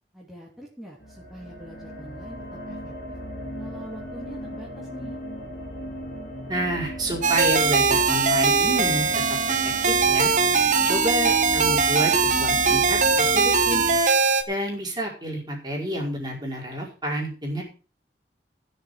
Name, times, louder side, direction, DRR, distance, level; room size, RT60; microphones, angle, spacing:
voice 1, 0.1-3.2 3.6-5.2, equal, ahead, -5 dB, 2.8 m, -44 dB
sound 1, 1.0-14.0, equal, 45° left, 3.6 m, -36 dB
voice 2, 6.5-9.6 9.9-10.3 10.8-13.8 14.5-17.6, right 1 dB, 25° right, -3 dB, 5.0 m, -29 dB
sound 2, 7.2-14.4, right 5 dB, 45° right, 1.3 m, -21 dB
15.5 x 6.9 x 6.5 m, 0.37 s
head